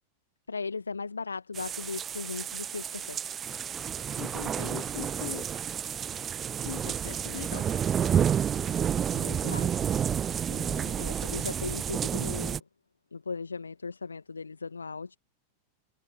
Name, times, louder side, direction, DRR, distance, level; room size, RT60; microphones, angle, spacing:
voice 1, 0.5-3.2 9.1-9.8 10.1-12.6 13.1-15.2, left 4 dB, 75° left, 1.6 m, -38 dB
sound 1, 1.5-12.6, right 8 dB, 25° right, 0.4 m, -30 dB
voice 2, 4.2-5.5 6.6-7.7, left 15 dB, 55° left, 4.0 m, -40 dB
figure-of-eight pair, 90°, 0 cm